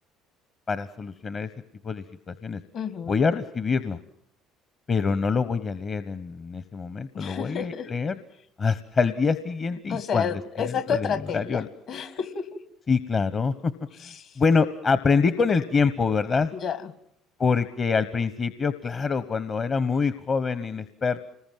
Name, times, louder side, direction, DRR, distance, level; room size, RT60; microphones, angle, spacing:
voice 1, 0.7-1.5 1.8-2.6 3.1-4.0 4.9-8.1 8.6-10.3 11.3-11.7 12.9-13.7 14.0-16.5 17.4-21.2, left 5 dB, 40° left, 13 dB, 1.1 m, -25 dB
voice 2, 2.7-3.2 7.1-7.9 9.9-12.6 14.0-14.4 16.5-16.9, left 6 dB, 60° left, 13 dB, 2.0 m, -31 dB
26.0 x 20.5 x 7.6 m, 0.73 s
hypercardioid pair, 65°, 0 cm